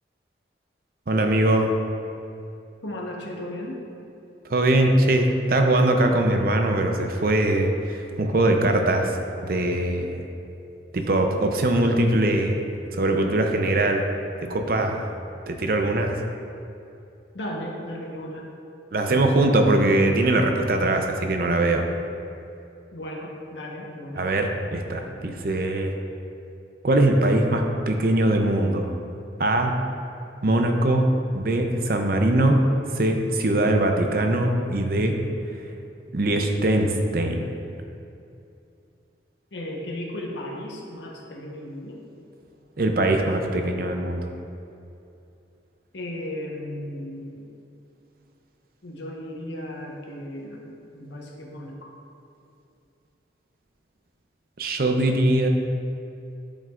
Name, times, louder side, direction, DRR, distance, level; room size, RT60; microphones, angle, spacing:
voice 1, 1.1-1.7 4.5-10.2 10.9-12.7 12.9-14.1 14.4-15.1 15.5-16.1 18.9-21.8 24.2-25.9 26.8-28.9 29.4-29.8 30.4-32.7 32.9-35.2 36.1-37.5 42.8-44.3 54.6-55.5, right 1 dB, 55° right, 4 dB, 0.6 m, -21 dB
voice 2, 2.8-3.8 17.3-18.4 19.1-19.7 22.9-24.2 39.5-42.0 45.9-47.4 48.8-51.9, left 1 dB, 85° left, -1 dB, 1.1 m, -35 dB
11.0 x 5.3 x 2.5 m, 2.7 s
head